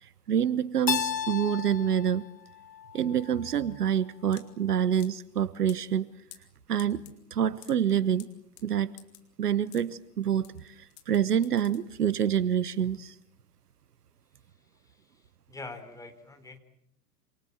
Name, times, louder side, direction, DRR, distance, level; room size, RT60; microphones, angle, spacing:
voice 1, 0.0-2.3 2.9-6.1 6.7-7.0 7.3-8.3 8.6-8.9 9.4-13.1, right 9 dB, 70° right, 18 dB, 1.2 m, -27 dB
Keyboard (musical), 0.9-3.7, left 8 dB, 80° left, 1.4 m, -34 dB
sound 1, 2.4-12.3, left 13 dB, 50° left, 4.1 m, -55 dB
voice 2, 14.7-16.6, left 3 dB, 5° left, 6 dB, 3.8 m, -45 dB
27.5 x 27.5 x 7.5 m, 0.76 s
figure-of-eight pair, 100°, 49 cm